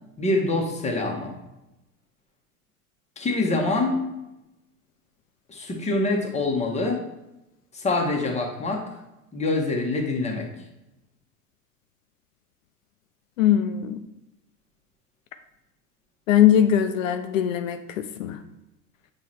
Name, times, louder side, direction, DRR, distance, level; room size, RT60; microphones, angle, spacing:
voice 1, 0.2-1.3 3.2-4.0 5.5-7.0 7.7-8.9 9.3-10.5, left 2 dB, 15° left, 1 dB, 1.2 m, -25 dB
voice 2, 13.4-14.0 16.3-18.4, left 10 dB, 60° left, 8 dB, 0.6 m, -21 dB
7.1 x 3.3 x 4.3 m, 0.93 s
figure-of-eight pair, 85°, 45 cm